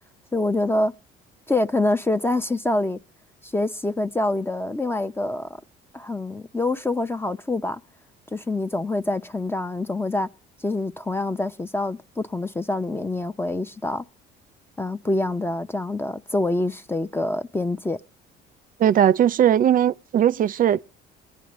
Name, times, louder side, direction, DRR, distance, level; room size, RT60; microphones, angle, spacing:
voice 1, 0.3-0.9 1.5-3.0 3.4-5.6 5.9-7.8 8.3-10.3 10.6-14.0 14.8-18.0, left 2 dB, 10° left, 0.6 m, -26 dB
voice 2, 18.8-20.8, right 10 dB, 45° right, 0.5 m, -18 dB
22.0 x 9.4 x 3.1 m
cardioid pair, 95°, 19 cm